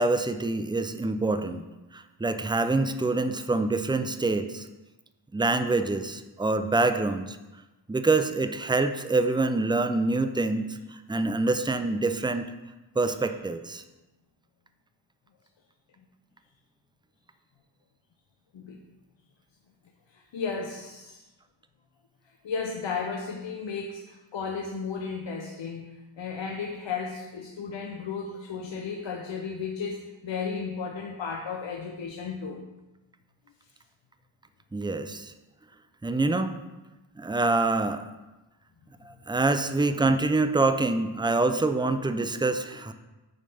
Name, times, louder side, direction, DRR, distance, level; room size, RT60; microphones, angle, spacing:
voice 1, 0.0-1.6 1.9-4.7 5.3-7.4 7.9-10.8 11.1-12.5 13.0-13.8 34.7-35.3 36.0-36.6 37.2-38.1 39.0-42.9, right 3 dB, 10° right, 9 dB, 0.4 m, -26 dB
voice 2, 20.1-21.2 22.4-32.6, left 5 dB, 70° left, 1 dB, 0.7 m, -34 dB
8.8 x 3.3 x 5.3 m, 1.1 s
wide cardioid pair, 70°, 46 cm